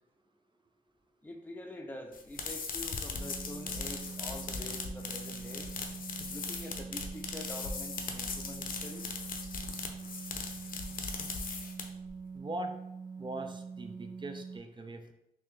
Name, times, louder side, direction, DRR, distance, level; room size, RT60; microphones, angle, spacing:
voice 1, 1.2-5.7 6.3-9.1, left 1 dB, 10° left, 2 dB, 0.6 m, -46 dB
sound 1, 2.1-12.1, left 4 dB, 70° left, 0.6 m, -39 dB
sound 2, 3.1-14.6, right 5 dB, 85° right, 0.6 m, -44 dB
voice 2, 12.3-12.7 13.2-15.1, right 2 dB, 30° right, 6 dB, 0.5 m, -41 dB
3.5 x 2.8 x 3.2 m, 0.83 s
cardioid pair, 60°, 15 cm